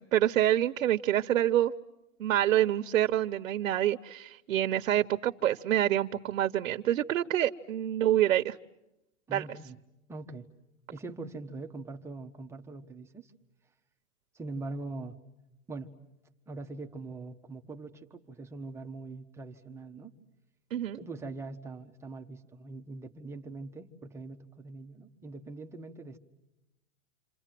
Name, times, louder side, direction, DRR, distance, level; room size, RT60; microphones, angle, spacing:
voice 1, 0.0-1.7 2.2-8.6 9.3-9.4 20.7-21.0, right 12 dB, 80° right, 8 dB, 1.1 m, -27 dB
voice 2, 9.3-9.8 10.1-10.5 10.9-13.3 14.3-15.2 15.7-15.9 16.5-20.1 21.0-26.2, right 3 dB, 5° right, 4 dB, 1.0 m, -42 dB
28.0 x 27.5 x 7.7 m, 0.91 s
hypercardioid pair, 155°, 41 cm